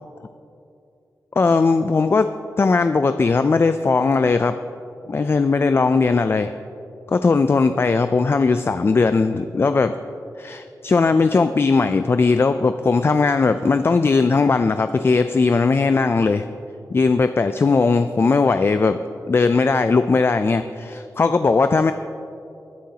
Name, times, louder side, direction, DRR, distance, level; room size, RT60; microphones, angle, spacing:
voice 1, 1.4-2.3 2.6-4.6 5.1-6.5 7.1-9.9 10.4-16.5 16.9-19.0 19.3-21.9, left 4 dB, 35° left, 10 dB, 0.3 m, -18 dB
19.5 x 10.0 x 2.8 m, 2.7 s
wide cardioid pair, 130°, 7 cm